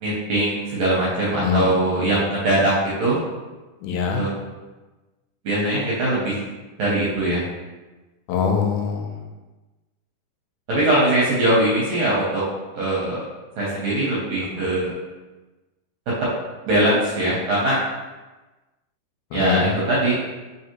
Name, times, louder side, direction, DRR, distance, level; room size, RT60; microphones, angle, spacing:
voice 1, 0.0-3.2 4.1-4.3 5.4-6.4 6.8-7.4 10.7-12.4 12.7-13.2 13.6-14.9 16.6-17.8 19.3-20.2, right 1 dB, 70° right, -7 dB, 1.7 m, -21 dB
voice 2, 1.4-1.7 2.1-2.2 3.8-4.2 8.3-9.1 14.5-14.7 19.3-19.7, left 6 dB, 80° left, 2 dB, 2.0 m, -23 dB
4.7 x 3.1 x 2.9 m, 1.2 s
omnidirectional pair, 3.8 m